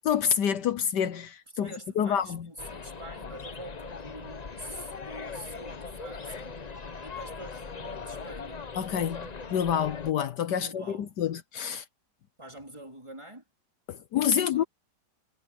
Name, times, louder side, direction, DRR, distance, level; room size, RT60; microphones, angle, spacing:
voice 1, 0.1-2.5 8.8-11.8 13.9-14.6, left 8 dB, 70° left, 1.4 m, -28 dB
voice 2, 1.5-6.6 7.0-8.6 10.6-11.1 12.4-13.4 14.4-14.7, right 1 dB, 15° right, 3.8 m, -45 dB
sound 1, 2.6-10.1, left 4 dB, 35° left, 0.7 m, -40 dB
omnidirectional pair, 1.9 m